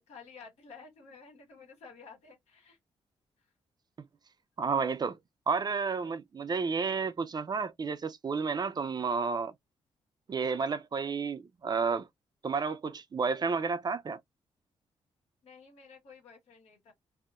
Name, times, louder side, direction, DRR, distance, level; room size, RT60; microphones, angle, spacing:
voice 1, 0.0-2.8 10.4-10.7 15.4-16.9, left 5 dB, 80° left, 1.6 m, -52 dB
voice 2, 4.6-5.2 5.5-9.5 10.3-12.1 12.4-14.2, right 5 dB, 40° right, 0.4 m, -31 dB
2.7 x 2.0 x 2.4 m
cardioid pair, 65°, 11 cm